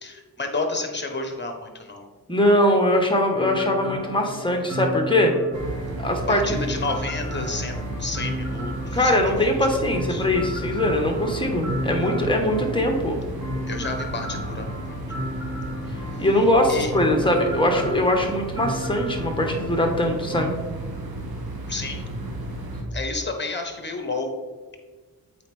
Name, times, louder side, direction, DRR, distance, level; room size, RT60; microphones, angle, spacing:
voice 1, 0.0-2.1 6.3-7.7 8.0-9.4 9.8-10.2 13.7-15.0 16.1-16.3 16.7-16.9 21.7-22.0 22.9-24.3, left 3 dB, 30° left, 4 dB, 1.3 m, -31 dB
voice 2, 2.3-5.3 6.0-6.4 8.9-13.2 16.2-20.6, left 1 dB, 15° left, 2 dB, 1.4 m, -21 dB
sound 1, 3.3-20.4, equal, 50° right, 1.6 m, -34 dB
sound 2, 5.5-22.8, right 1 dB, 70° right, 1.4 m, -33 dB
8.1 x 4.2 x 3.5 m, 1.4 s
cardioid pair, 65°, 37 cm